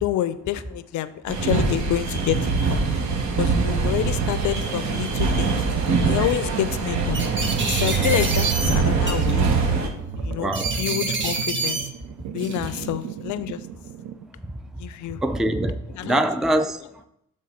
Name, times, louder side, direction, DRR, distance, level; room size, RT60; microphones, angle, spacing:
voice 1, 0.0-2.8 3.4-5.6 6.0-7.2 7.7-9.5 10.2-10.5 10.8-11.8 12.3-13.6 14.8-15.2 16.0-16.2, left 12 dB, 75° left, 0.5 m, -27 dB
sound 1, 1.3-9.9, right 4 dB, 65° right, 1.2 m, -24 dB
sound 2, 3.6-3.7 4.3-4.9 5.7-5.9 6.2-6.4 7.1-8.7 9.1-9.6 10.5-11.8 12.4-12.8, right 3 dB, 40° right, 1.4 m, -28 dB
sound 3, 3.8-14.3, right 10 dB, 85° right, 0.6 m, -30 dB
voice 2, 10.2-10.8 14.4-17.0, right 1 dB, ahead, 0.4 m, -26 dB
6.6 x 3.7 x 5.6 m
cardioid pair, 90°, 30 cm